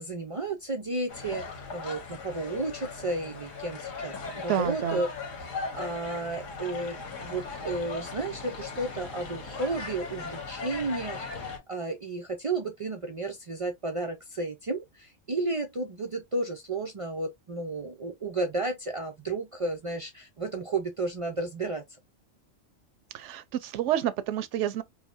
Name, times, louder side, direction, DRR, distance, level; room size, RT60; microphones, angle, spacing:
voice 1, 0.0-5.1 5.4-21.8, right 2 dB, 60° right, 0.3 m, -33 dB
sound 1, 1.1-11.6, left 4 dB, 90° left, 1.4 m, -38 dB
voice 2, 4.5-5.0 23.1-24.8, right 11 dB, 75° right, 0.9 m, -29 dB
4.8 x 2.1 x 2.5 m
omnidirectional pair, 1.3 m